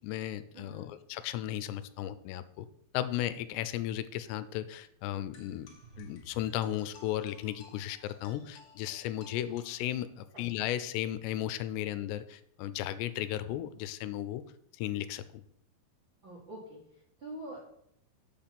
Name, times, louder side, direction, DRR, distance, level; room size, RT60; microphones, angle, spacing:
voice 1, 0.0-2.7 2.9-5.7 6.0-14.4 14.8-15.4, left 12 dB, 85° left, 13 dB, 2.8 m, -35 dB
voice 2, 0.5-0.8 10.3-10.5 16.2-17.6, right 1 dB, 50° right, -3 dB, 1.5 m, -45 dB
sound 1, 5.3-10.3, left 4 dB, 60° left, 1.9 m, -58 dB
sound 2, 5.4-8.5, right 3 dB, 65° right, 2.7 m, -57 dB
7.1 x 7.1 x 5.8 m, 0.72 s
omnidirectional pair, 4.9 m